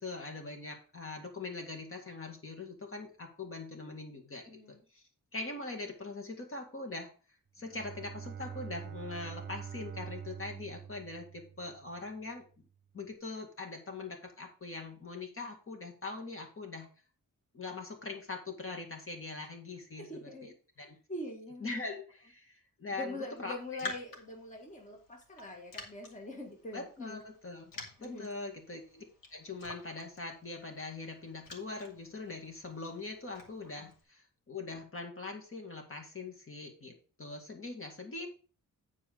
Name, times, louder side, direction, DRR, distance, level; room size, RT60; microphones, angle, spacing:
voice 1, 0.0-5.0 5.3-7.1 7.6-12.4 12.9-16.9 17.5-20.5 20.8-21.0 21.6-23.5 23.8-23.9 26.7-27.7 28.0-29.0 29.3-38.3, left 3 dB, 40° left, 3 dB, 2.0 m, -42 dB
voice 2, 4.5-4.8 20.0-20.5 21.1-21.9 22.9-27.2 28.0-28.3 33.8-33.9, left 1 dB, 20° left, 1 dB, 1.7 m, -43 dB
Bowed string instrument, 7.6-12.1, right 8 dB, 35° right, 1.0 m, -45 dB
Raindrop, 23.4-34.0, left 3 dB, 80° left, 2.5 m, -50 dB
9.9 x 4.7 x 5.1 m, 0.37 s
wide cardioid pair, 130°, 33 cm